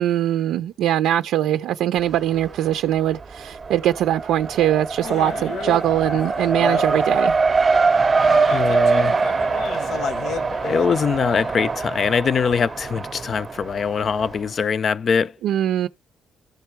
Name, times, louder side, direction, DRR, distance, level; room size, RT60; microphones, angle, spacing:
voice 1, 0.0-7.4 15.4-15.9, right 12 dB, 85° right, 0.5 m, -21 dB
Race car auto racing, 2.0-2.7 3.0-14.4, right 4 dB, 35° right, 0.6 m, -23 dB
sound 1, 5.0-11.5, left 7 dB, 75° left, 1.1 m, -33 dB
voice 2, 8.5-9.2 9.7-10.0 10.6-15.3, left 6 dB, 50° left, 0.5 m, -22 dB
13.0 x 4.5 x 4.6 m
cardioid pair, 90°, 0 cm